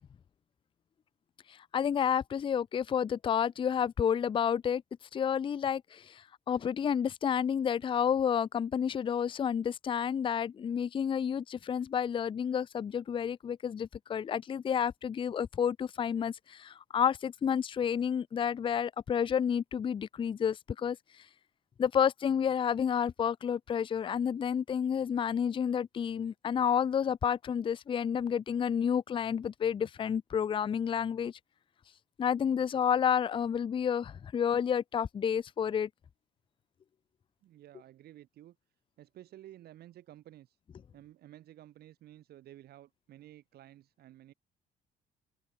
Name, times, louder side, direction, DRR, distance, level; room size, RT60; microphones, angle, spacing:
voice 1, 1.7-4.8 5.1-21.0 21.8-31.3 32.2-35.9, left 8 dB, 30° left, 0.5 m, -30 dB
voice 2, 37.4-38.6 39.0-40.6 40.9-44.3, right 13 dB, 70° right, 7.0 m, -53 dB
cardioid pair, 110°, 17 cm